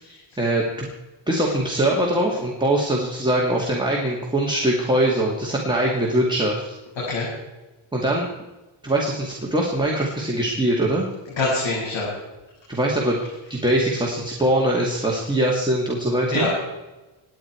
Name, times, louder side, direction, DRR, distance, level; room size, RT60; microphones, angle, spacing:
voice 1, 0.4-0.9 1.3-6.6 7.9-8.3 8.8-11.1 12.7-13.2 13.5-16.5, right 1 dB, 10° right, -3 dB, 2.4 m, -22 dB
voice 2, 7.0-7.3 11.4-12.1 16.3-16.6, left 2 dB, 65° left, -6 dB, 7.0 m, -24 dB
26.0 x 11.0 x 4.7 m, 1.1 s
wide cardioid pair, 165°, 49 cm